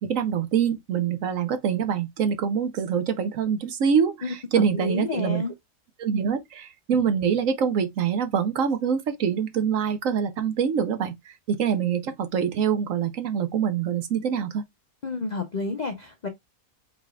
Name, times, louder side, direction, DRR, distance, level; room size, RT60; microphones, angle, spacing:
voice 1, 0.0-5.4 6.0-14.6, right 7 dB, 60° right, 1.1 m, -25 dB
voice 2, 4.2-5.5 15.0-16.3, left 4 dB, 50° left, 0.5 m, -30 dB
4.9 x 4.1 x 2.3 m
omnidirectional pair, 1.7 m